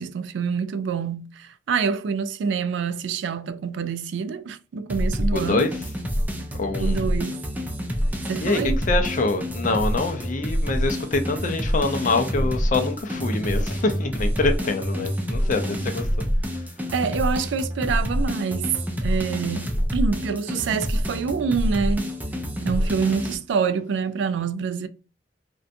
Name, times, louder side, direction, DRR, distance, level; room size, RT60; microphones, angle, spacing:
voice 1, 0.0-5.7 6.8-7.4 8.3-8.8 16.9-18.7 19.0-22.1 22.6-24.9, right 6 dB, 75° right, 0.3 m, -26 dB
sound 1, 4.9-23.4, equal, 10° right, 0.4 m, -27 dB
voice 2, 5.3-5.7 6.6-7.0 8.4-16.3 16.5-16.6 23.0-23.2, left 3 dB, 45° left, 0.5 m, -25 dB
2.5 x 2.2 x 2.5 m
head